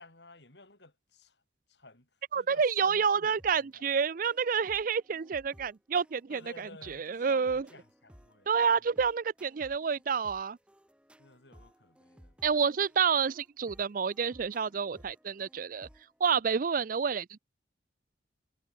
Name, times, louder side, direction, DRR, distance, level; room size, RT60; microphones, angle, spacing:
voice 1, 0.0-1.4 1.7-3.8 6.3-8.9 11.2-12.5, left 2 dB, 65° left, 5.5 m, -54 dB
voice 2, 2.3-7.7 8.5-10.6 12.4-15.9 16.2-17.4, right 6 dB, 45° right, 0.4 m, -29 dB
sound 1, 3.4-16.3, equal, 5° right, 2.2 m, -59 dB
head